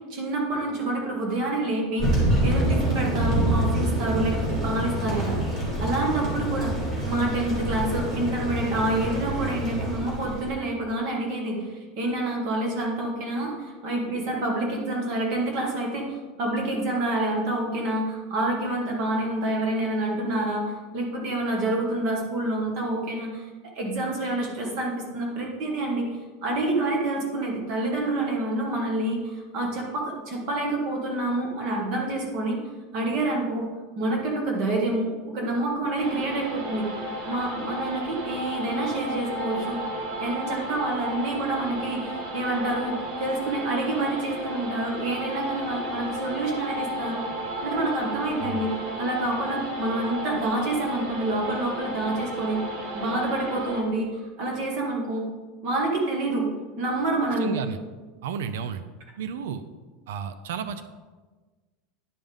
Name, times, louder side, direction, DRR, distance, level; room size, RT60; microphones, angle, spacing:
voice 1, 0.1-5.4 5.8-6.7 7.1-23.5 23.7-26.1 26.4-32.6 32.9-33.7 34.0-39.8 40.2-47.2 47.6-48.7 49.0-52.6 52.9-55.2 55.6-56.5 56.8-57.6, right 2 dB, 45° right, -1 dB, 1.6 m, -27 dB
Thunder, 2.0-10.5, right 1 dB, 25° right, 2.5 m, -26 dB
sound 1, 36.0-53.8, right 1 dB, 60° right, 1.5 m, -34 dB
voice 2, 57.4-57.8 58.2-58.8 59.2-59.6 60.1-60.8, right 7 dB, 80° right, 11 dB, 0.4 m, -32 dB
10.0 x 5.4 x 3.5 m, 1.3 s
supercardioid pair, 170°, 0 cm